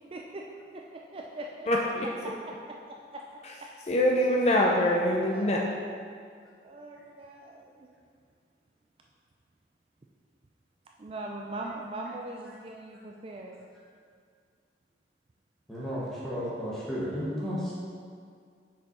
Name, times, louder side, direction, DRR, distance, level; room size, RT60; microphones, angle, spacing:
voice 1, 0.1-0.4 0.7-1.7 2.9-3.2 5.3-5.5 6.6-7.9 11.0-13.7, right 2 dB, 30° right, 0 dB, 0.3 m, -41 dB
voice 2, 1.7-2.1 3.4-3.5 3.9-5.6, left 1 dB, 35° left, -1 dB, 0.4 m, -24 dB
voice 3, 15.7-17.7, equal, 5° left, -8 dB, 1.4 m, -33 dB
6.2 x 4.6 x 4.2 m, 2.1 s
head